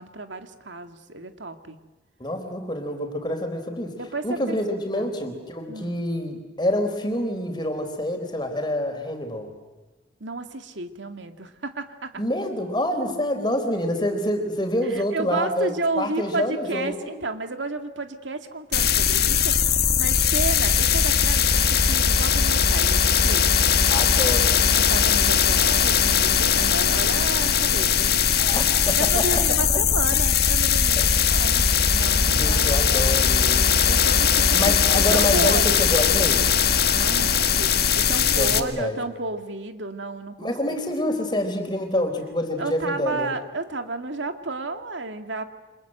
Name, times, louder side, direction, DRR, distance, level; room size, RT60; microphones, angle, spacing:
voice 1, 0.0-1.8 3.9-4.6 4.9-5.1 5.7-6.0 10.2-12.2 14.8-23.5 24.8-28.5 28.9-31.7 31.9-32.7 33.9-34.6 34.9-35.8 36.9-40.5 42.6-45.4, right 3 dB, 85° right, 7 dB, 2.1 m, -32 dB
voice 2, 2.2-4.0 4.2-9.5 12.2-17.2 23.9-24.6 28.4-29.4 29.7-29.8 31.0-31.2 32.2-33.7 34.5-36.5 38.2-39.0 40.4-43.3, left 1 dB, 25° left, 5 dB, 4.1 m, -27 dB
sound 1, 18.7-38.6, left 7 dB, 55° left, 1.7 m, -20 dB
29.0 x 26.0 x 7.9 m, 1.2 s
head